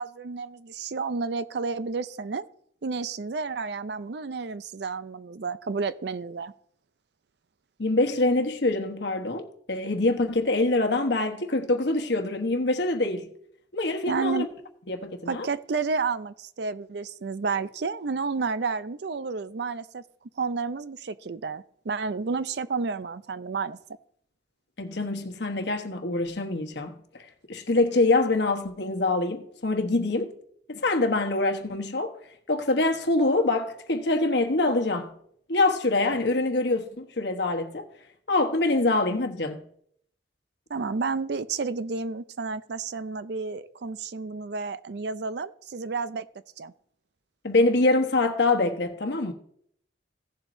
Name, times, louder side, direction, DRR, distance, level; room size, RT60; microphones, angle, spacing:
voice 1, 0.0-2.5 2.8-6.5 14.1-14.5 15.3-20.0 20.4-23.8 40.7-46.3 46.6-46.7, right 4 dB, 60° right, 0.5 m, -31 dB
voice 2, 7.8-13.3 13.7-14.5 14.9-15.5 24.8-30.3 30.7-32.1 32.5-35.2 35.5-37.9 38.3-39.6 47.4-49.3, left 2 dB, 65° left, 1.1 m, -25 dB
16.5 x 7.4 x 2.7 m
head